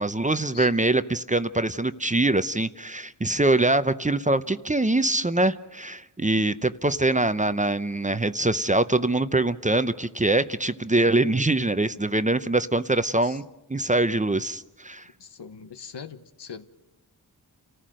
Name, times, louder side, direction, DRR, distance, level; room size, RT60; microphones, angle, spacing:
voice 1, 0.0-13.4 13.7-15.1, right 2 dB, 20° right, 12 dB, 0.7 m, -23 dB
voice 2, 15.2-16.7, left 6 dB, 75° left, 10 dB, 1.1 m, -41 dB
29.5 x 14.5 x 6.4 m, 0.98 s
wide cardioid pair, 60°, 42 cm